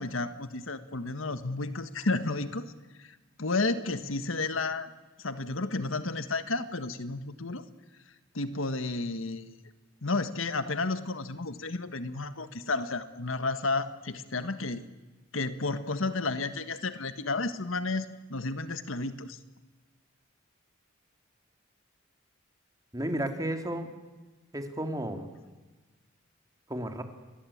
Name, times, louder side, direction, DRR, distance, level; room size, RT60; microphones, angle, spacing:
voice 1, 0.0-2.7 3.0-4.9 5.2-7.6 8.3-9.5 10.0-14.8 15.3-19.4, left 3 dB, 75° left, 11 dB, 1.5 m, -32 dB
voice 2, 22.9-23.9 24.5-25.3 26.7-27.0, right 1 dB, 15° right, 6 dB, 2.8 m, -32 dB
28.5 x 21.5 x 8.7 m, 1.2 s
head